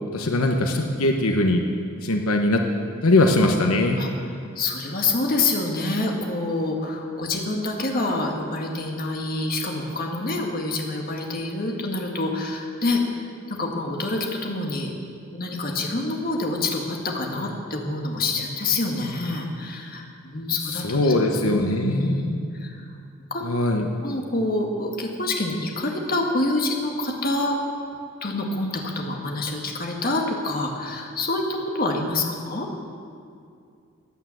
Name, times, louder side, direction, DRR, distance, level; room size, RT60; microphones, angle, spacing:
voice 1, 0.1-1.6 2.0-2.6 3.0-4.0 20.8-22.2 23.4-23.9, left 2 dB, 85° left, 3 dB, 1.1 m, -21 dB
voice 2, 4.6-13.0 13.5-14.9 15.3-21.1 21.4-22.8 23.3-23.5 24.0-27.6 28.2-32.7, left 2 dB, 45° left, 1 dB, 1.8 m, -27 dB
15.5 x 9.3 x 7.7 m, 2.4 s
head